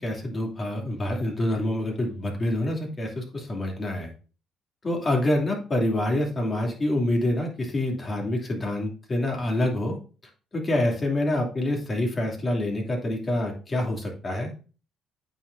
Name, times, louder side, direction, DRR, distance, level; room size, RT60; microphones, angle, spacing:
voice 1, 0.0-4.1 4.8-10.0 10.5-14.5, left 1 dB, 35° left, 0 dB, 2.8 m, -26 dB
8.9 x 5.8 x 2.7 m, 0.36 s
supercardioid pair, 60°, 0 cm